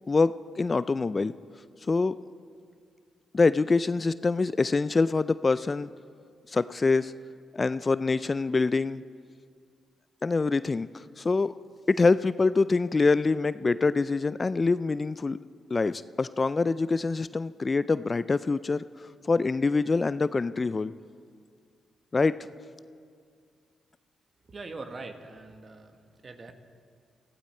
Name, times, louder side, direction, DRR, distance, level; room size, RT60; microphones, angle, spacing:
voice 1, 0.1-1.3 1.9-2.1 3.3-5.9 6.5-7.1 7.5-9.0 10.2-10.9 11.2-11.5 11.9-15.4 15.7-20.9 22.1-22.3, left 3 dB, 35° left, 15 dB, 0.4 m, -25 dB
voice 2, 24.4-26.5, right 3 dB, 45° right, 7 dB, 1.5 m, -42 dB
20.0 x 15.0 x 4.4 m, 2.2 s
supercardioid pair, 50°, 0 cm